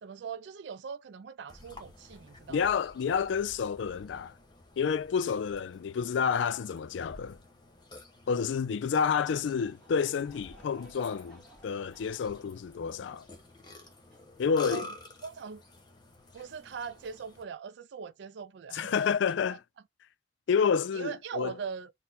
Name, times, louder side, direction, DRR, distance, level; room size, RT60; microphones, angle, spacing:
voice 1, 0.0-2.6 14.7-14.9 15.2-15.6 16.3-19.0 20.9-21.9, right 6 dB, 70° right, 0.4 m, -41 dB
Burping eructation, 1.5-17.4, left 2 dB, 25° left, 1.0 m, -50 dB
voice 2, 2.5-4.4 4.8-7.4 8.3-13.3 14.4-14.9 18.7-19.6 20.5-21.5, left 6 dB, 75° left, 0.3 m, -29 dB
Laughter / Crowd, 9.1-14.8, right 1 dB, 5° left, 1.9 m, -58 dB
4.2 x 2.2 x 3.8 m
head